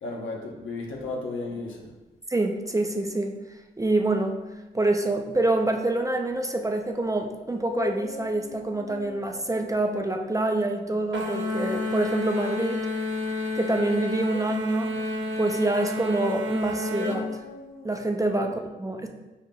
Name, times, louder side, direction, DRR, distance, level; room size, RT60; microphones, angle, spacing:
voice 1, 0.0-1.9 18.4-18.5, left 3 dB, 75° left, 0 dB, 0.8 m, -34 dB
sound 1, 1.5-1.9 2.8-3.3 6.3-6.4 7.5-11.4 14.2-15.5 16.6-17.9, left 6 dB, 50° left, 0.4 m, -41 dB
voice 2, 2.3-3.4 3.8-4.4 4.7-12.8 13.5-14.9 15.4-17.4 17.8-19.1, right 2 dB, 15° right, 3 dB, 0.4 m, -26 dB
sound 2, 11.1-17.2, left 2 dB, 65° right, 0.7 m, -30 dB
4.9 x 2.8 x 2.2 m, 1.1 s
cardioid pair, 50°, 21 cm